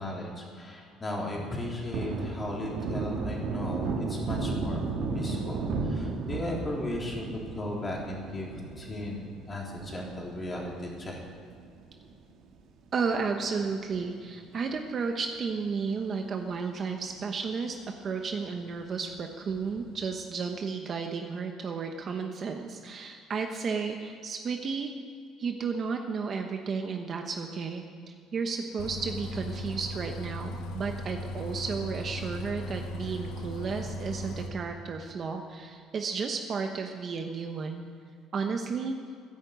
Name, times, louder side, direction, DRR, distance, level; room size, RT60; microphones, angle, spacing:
voice 1, 0.0-11.2, left 1 dB, 20° left, -2 dB, 3.5 m, -36 dB
Thunder, 1.5-12.2 12.6-12.7 13.1-14.6 14.9-15.0 15.4-16.2 16.6-16.7 17.0-17.1 19.5-20.0, right 4 dB, 60° right, 1.9 m, -35 dB
voice 2, 12.9-24.9 25.4-37.8 38.3-38.9, right 5 dB, 35° right, 4 dB, 1.1 m, -33 dB
Bus, 28.8-34.5, left 1 dB, 70° left, 1.3 m, -37 dB
14.0 x 10.5 x 8.1 m, 2.2 s
cardioid pair, 140°, 0 cm